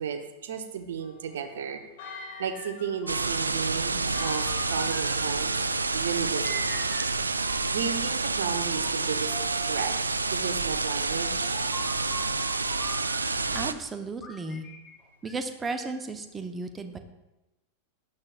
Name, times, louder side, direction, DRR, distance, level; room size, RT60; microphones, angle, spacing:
voice 1, 0.0-1.8 2.4-4.4 4.7-5.7 5.9-6.9 7.7-9.3 9.7-9.9 10.3-11.6, right 7 dB, 60° right, 7 dB, 1.1 m, -33 dB
Church bell, 1.0-6.7, left 7 dB, 50° left, 3.4 m, -48 dB
sound 1, 2.0-3.6 4.2-5.8 6.4-8.1 8.7-9.9 11.0-13.8 14.2-16.0, equal, 20° left, 1.8 m, -43 dB
sound 2, 3.1-13.7, right 3 dB, 80° right, 0.5 m, -28 dB
voice 2, 13.3-14.7 15.2-17.0, right 3 dB, 15° right, 7 dB, 1.0 m, -35 dB
16.5 x 11.0 x 2.5 m, 0.98 s
figure-of-eight pair, 90°, 0 cm